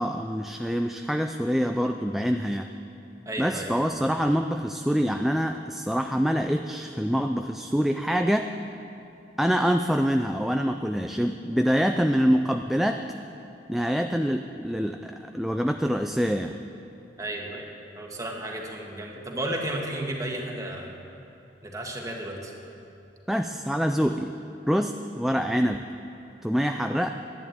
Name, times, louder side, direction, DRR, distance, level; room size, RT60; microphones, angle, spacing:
voice 1, 0.0-2.7 3.4-8.5 9.4-13.0 13.7-16.6 23.3-24.3 24.7-25.8 26.4-27.1, equal, ahead, 5 dB, 0.3 m, -25 dB
voice 2, 3.2-3.7 17.2-17.7 17.9-20.9 21.6-22.5, right 1 dB, 20° right, 0 dB, 1.8 m, -33 dB
11.0 x 11.0 x 8.7 m, 2.7 s
head